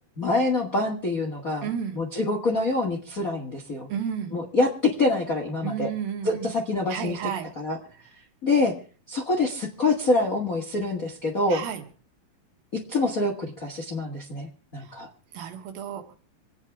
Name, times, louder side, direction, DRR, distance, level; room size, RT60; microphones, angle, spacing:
voice 1, 0.2-1.7 1.9-3.9 4.3-5.9 6.2-7.2 7.6-7.8 8.4-8.7 9.1-11.6 12.7-15.1, left 2 dB, 40° left, 2 dB, 1.2 m, -25 dB
voice 2, 1.6-2.0 3.9-4.4 5.6-6.5 6.9-7.5 11.5-11.8 14.8-15.0 15.3-16.1, right 8 dB, 70° right, 6 dB, 3.0 m, -32 dB
27.5 x 9.5 x 3.6 m, 0.38 s
omnidirectional pair, 4.5 m